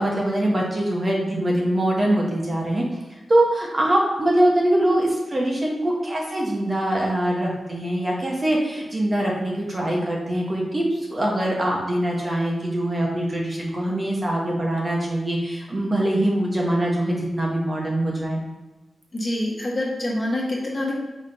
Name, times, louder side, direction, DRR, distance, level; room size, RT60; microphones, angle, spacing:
voice 1, 0.0-2.8 3.3-10.8 11.1-18.4, right 1 dB, 25° right, -2 dB, 1.1 m, -23 dB
voice 2, 19.1-20.9, left 1 dB, 25° left, -3 dB, 1.4 m, -26 dB
5.3 x 3.6 x 5.4 m, 1.1 s
wide cardioid pair, 160°, 0 cm